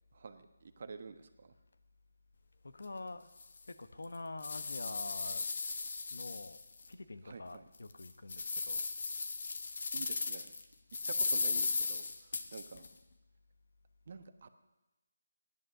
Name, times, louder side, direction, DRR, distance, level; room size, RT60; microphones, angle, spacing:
voice 1, 0.1-1.5 7.2-7.7 9.9-10.5 11.1-12.9 14.1-14.5, right 5 dB, 45° right, 9 dB, 1.2 m, -49 dB
voice 2, 2.6-3.3 3.6-5.4 6.1-6.6 6.9-8.9, left 2 dB, 75° left, 11 dB, 1.1 m, -46 dB
sound 1, 2.8-2.9 3.4-3.5 4.0-6.9 7.3-7.4 7.9-10.6 10.9-12.9, left 4 dB, 55° left, 1.2 m, -36 dB
15.0 x 11.0 x 6.6 m, 1.1 s
figure-of-eight pair, 165°, 0 cm